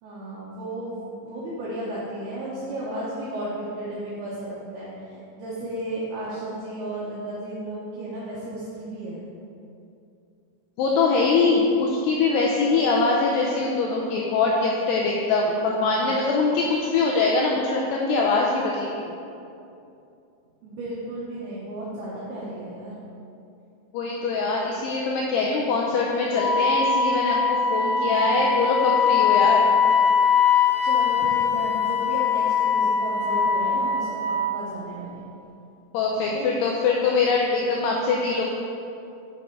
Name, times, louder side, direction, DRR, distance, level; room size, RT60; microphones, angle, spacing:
voice 1, 0.0-9.2 15.6-16.1 20.6-22.9 30.8-34.2 34.5-35.3 36.1-36.5, right 1 dB, 75° right, -8 dB, 2.5 m, -34 dB
voice 2, 10.8-19.2 23.9-29.7 35.9-38.4, left 3 dB, 85° left, -2 dB, 2.3 m, -23 dB
Wind instrument woodwind instrument, 26.3-34.6, left 6 dB, 50° left, 2.5 m, -21 dB
7.1 x 6.1 x 4.6 m, 2.6 s
omnidirectional pair, 5.4 m